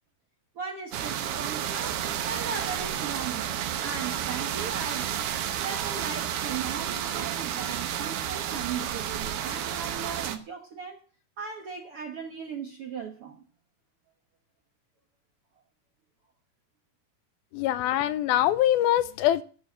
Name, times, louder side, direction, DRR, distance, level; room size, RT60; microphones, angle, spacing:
voice 1, 0.5-5.1 5.6-11.0 11.4-13.4 17.9-18.0, right 6 dB, 60° right, 1.5 m, -37 dB
sound 1, 0.9-10.4, right 10 dB, 85° right, 3.1 m, -31 dB
voice 2, 17.5-19.4, left 12 dB, 80° left, 2.5 m, -23 dB
13.0 x 7.1 x 7.5 m
omnidirectional pair, 4.4 m